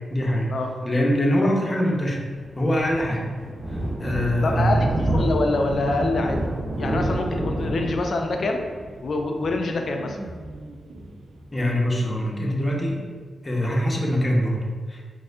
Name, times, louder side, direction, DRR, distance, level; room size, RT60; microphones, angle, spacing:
voice 1, 0.1-0.5 0.8-2.2 2.6-3.3 3.7-4.8 11.5-13.0 13.4-15.0, equal, 30° left, -1 dB, 0.8 m, -23 dB
Thunder, 2.3-11.5, right 1 dB, 55° right, 0.9 m, -29 dB
voice 2, 4.4-6.5 6.8-8.6 9.0-10.2, left 2 dB, 65° left, 3 dB, 0.4 m, -25 dB
sound 1, 5.0-13.1, right 2 dB, 80° right, 0.4 m, -43 dB
4.1 x 2.6 x 2.5 m, 1.5 s
supercardioid pair, 45°, 0 cm